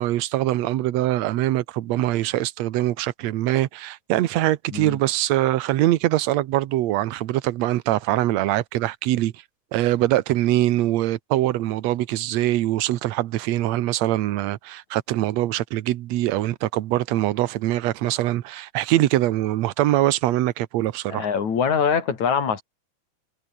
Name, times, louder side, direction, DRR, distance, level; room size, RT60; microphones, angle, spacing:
voice 1, 0.0-9.3 9.7-21.3, right 15 dB, 70° right, 2.0 m, -23 dB
voice 2, 21.1-22.6, left 6 dB, 65° left, 4.6 m, -23 dB
omnidirectional pair, 3.6 m